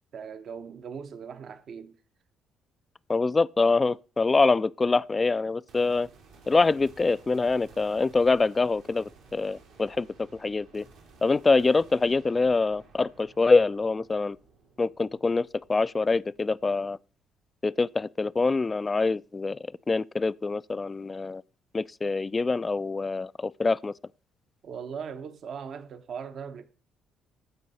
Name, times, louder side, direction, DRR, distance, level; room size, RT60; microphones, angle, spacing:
voice 1, 0.1-1.9 24.6-26.6, right 6 dB, 60° right, 0.9 m, -39 dB
voice 2, 3.1-6.1 6.5-10.1 10.3-10.8 11.2-14.4 14.8-17.0 17.6-19.6 19.9-21.4 21.7-23.9, left 3 dB, 30° left, 0.3 m, -25 dB
sound 1, 5.7-17.0, right 4 dB, 90° right, 2.5 m, -55 dB
13.5 x 4.7 x 4.1 m
supercardioid pair, 60°, 0 cm